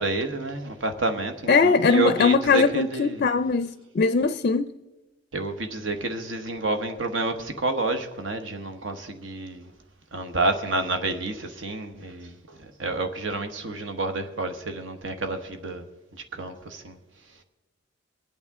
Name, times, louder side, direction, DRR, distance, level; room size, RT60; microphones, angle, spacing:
voice 1, 0.0-3.2 5.3-9.7 10.1-15.8 16.3-17.0, right 2 dB, 70° right, 1.2 m, -29 dB
voice 2, 1.5-4.7, left 4 dB, 45° left, 0.4 m, -21 dB
23.5 x 8.7 x 3.6 m
head